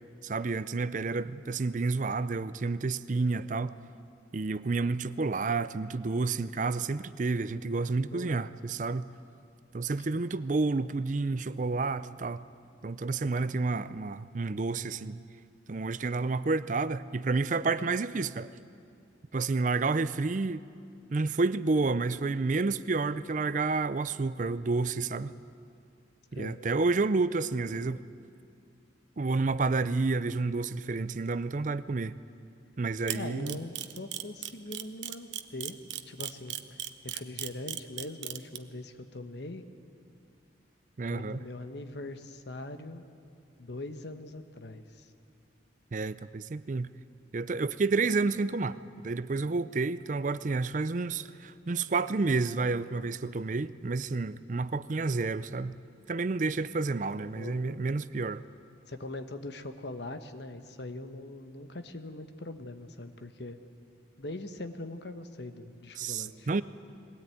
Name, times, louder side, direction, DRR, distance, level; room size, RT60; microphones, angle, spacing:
voice 1, 0.2-3.8 4.3-9.1 9.7-12.4 12.8-15.2 15.7-18.5 19.3-20.6 21.1-25.3 26.3-28.0 29.2-32.1 32.8-33.6 41.0-41.4 45.9-46.9 47.3-48.8 49.0-55.8 56.1-58.4 66.0-66.6, right 3 dB, 40° right, 0.4 m, -30 dB
voice 2, 8.1-8.5 10.0-10.3 26.3-26.6 33.1-35.8 36.1-36.8 37.0-39.6 41.1-43.0 43.6-45.1 57.3-57.8 58.9-63.6 64.2-66.5, left 2 dB, 65° left, 1.2 m, -42 dB
Camera, 33.1-38.6, right 12 dB, 75° right, 0.9 m, -35 dB
21.5 x 17.0 x 9.2 m
head